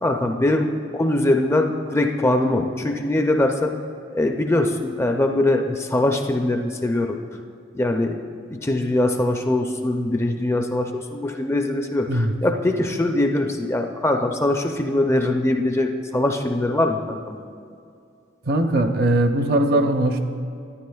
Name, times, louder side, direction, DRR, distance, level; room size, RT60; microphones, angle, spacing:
voice 1, 0.0-3.7 4.1-7.2 7.7-8.2 8.5-17.4, left 1 dB, 15° left, 4 dB, 0.4 m, -22 dB
voice 2, 18.5-20.2, right 1 dB, 55° right, 6 dB, 0.6 m, -20 dB
12.5 x 9.6 x 2.3 m, 2.4 s
head